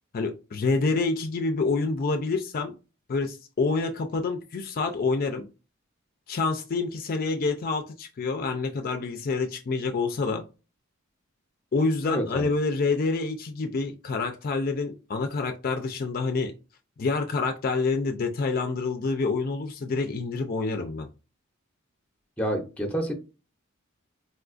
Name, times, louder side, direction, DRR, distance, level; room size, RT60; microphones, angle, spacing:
voice 1, 0.1-2.7 3.1-5.5 6.3-10.4 11.7-16.5 17.0-21.1, left 3 dB, 45° left, 0.4 m, -27 dB
voice 2, 12.0-12.5 22.4-23.1, equal, 5° left, 0.6 m, -28 dB
4.2 x 2.3 x 2.4 m
head